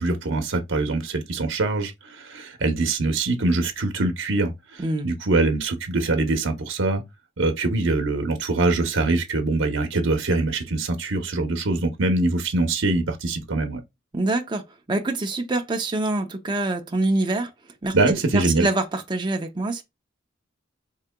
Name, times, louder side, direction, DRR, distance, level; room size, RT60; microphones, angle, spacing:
voice 1, 0.0-7.0 7.4-13.8 17.9-18.7, right 2 dB, 85° right, 0.8 m, -23 dB
voice 2, 14.1-14.6 14.9-17.5 17.8-19.8, right 2 dB, 25° right, 0.6 m, -25 dB
4.7 x 2.8 x 2.2 m
head